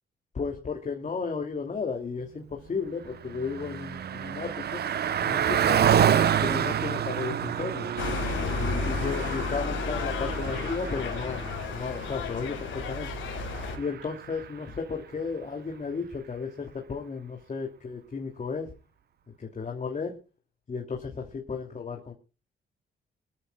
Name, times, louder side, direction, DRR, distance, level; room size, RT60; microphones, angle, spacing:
voice 1, 0.3-4.8 5.2-5.9 6.4-7.9 8.5-13.1 13.8-18.7 19.4-20.2 20.7-22.1, left 5 dB, 35° left, 2.8 m, -34 dB
Car passing by, 2.8-14.6, right 9 dB, 55° right, 0.9 m, -29 dB
sound 1, 8.0-13.8, left 3 dB, 85° left, 4.7 m, -32 dB
24.0 x 13.5 x 2.3 m
cardioid pair, 90°, 20 cm